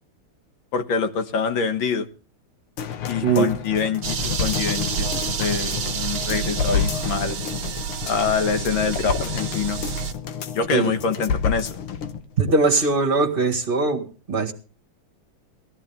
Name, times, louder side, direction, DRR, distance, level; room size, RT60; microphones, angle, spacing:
voice 1, 0.7-2.1 3.1-7.4 8.0-9.8 10.5-11.7, left 5 dB, 65° left, 2.0 m, -25 dB
sound 1, 2.8-12.2 12.6-12.7, left 7 dB, 85° left, 2.1 m, -29 dB
sound 2, 4.0-10.1, right 7 dB, 85° right, 2.0 m, -29 dB
voice 2, 12.4-14.5, right 4 dB, 25° right, 1.8 m, -21 dB
19.0 x 13.5 x 3.4 m
omnidirectional pair, 2.4 m